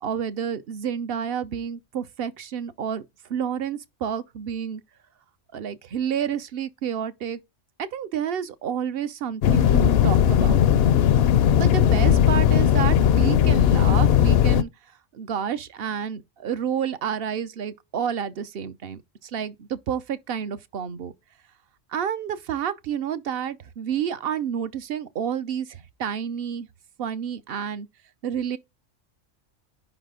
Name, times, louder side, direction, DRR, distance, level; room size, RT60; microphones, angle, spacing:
voice 1, 0.0-3.0 3.3-4.8 5.5-7.4 7.8-10.6 11.6-14.7 15.1-21.1 21.9-26.7 27.0-27.9 28.2-28.6, right 8 dB, 55° right, 0.8 m, -30 dB
sound 1, 9.4-14.6, left 9 dB, 65° left, 0.6 m, -18 dB
5.4 x 4.0 x 5.0 m
omnidirectional pair, 1.4 m